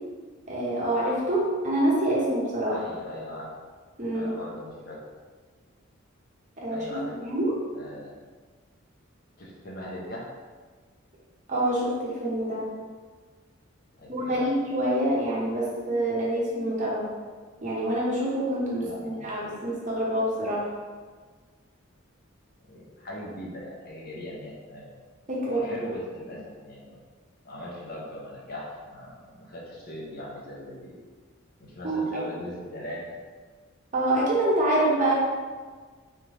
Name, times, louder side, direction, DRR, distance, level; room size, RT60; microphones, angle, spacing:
voice 1, 0.5-2.8 4.0-4.3 6.6-7.5 11.5-12.6 14.1-17.1 17.6-20.6 25.3-25.6 31.8-32.0 33.9-35.1, right 1 dB, 35° right, -5 dB, 0.9 m, -26 dB
voice 2, 2.7-3.5 4.1-5.0 6.7-7.1 7.7-8.1 9.4-10.2 13.9-14.5 18.8-19.4 22.6-24.9 25.4-26.4 26.6-27.0 27.4-31.0 31.6-33.1, left 1 dB, 45° left, -4 dB, 0.8 m, -39 dB
3.5 x 3.4 x 3.0 m, 1.5 s
head